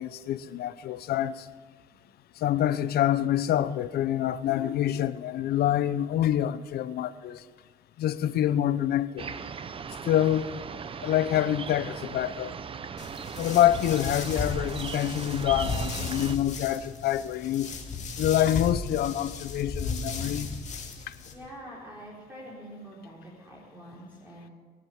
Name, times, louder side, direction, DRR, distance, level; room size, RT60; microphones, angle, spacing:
voice 1, 0.0-1.5 2.4-7.4 8.0-9.3 10.0-10.6 11.0-12.5 13.4-17.7 18.2-20.5 21.1-21.2, left 11 dB, 65° left, 0.7 m, -26 dB
sound 1, 9.2-16.4, right 6 dB, 30° right, 0.7 m, -38 dB
sound 2, 13.0-21.3, left 4 dB, 45° left, 2.3 m, -35 dB
voice 2, 21.3-24.5, equal, 10° right, 4.2 m, -45 dB
22.5 x 7.7 x 7.1 m
cardioid pair, 110°, 17 cm